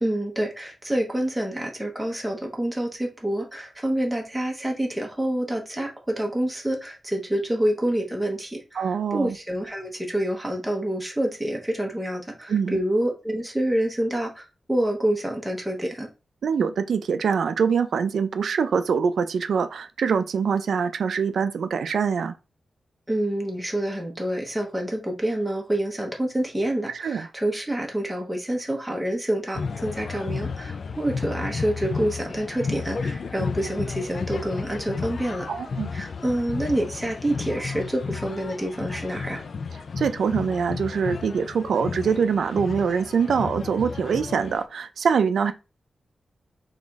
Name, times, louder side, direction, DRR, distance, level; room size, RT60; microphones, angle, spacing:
voice 1, 0.0-16.1 23.1-35.5 35.9-39.4, right 1 dB, 5° right, 0.9 m, -27 dB
voice 2, 8.7-9.4 12.5-12.8 16.4-22.3 26.9-27.3 35.5-35.9 40.0-45.5, right 6 dB, 80° right, 0.4 m, -24 dB
sound 1, 29.5-44.7, left 5 dB, 55° left, 0.4 m, -33 dB
3.9 x 3.0 x 3.5 m
wide cardioid pair, 135°, 0 cm